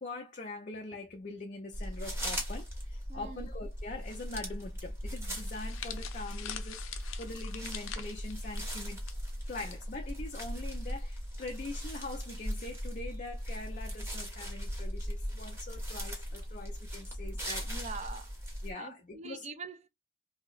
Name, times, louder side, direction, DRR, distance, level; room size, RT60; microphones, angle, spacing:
voice 1, 0.0-9.0 9.5-17.7 18.6-19.5, left 2 dB, 40° left, 0.4 m, -43 dB
sound 1, 1.7-18.7, equal, 10° right, 0.9 m, -39 dB
voice 2, 3.1-3.5 17.6-18.4 18.8-19.9, right 4 dB, 35° right, 0.4 m, -44 dB
sound 2, 5.5-9.8 10.0-10.3 11.2-11.4, left 9 dB, 85° left, 0.5 m, -45 dB
2.8 x 2.0 x 3.8 m
head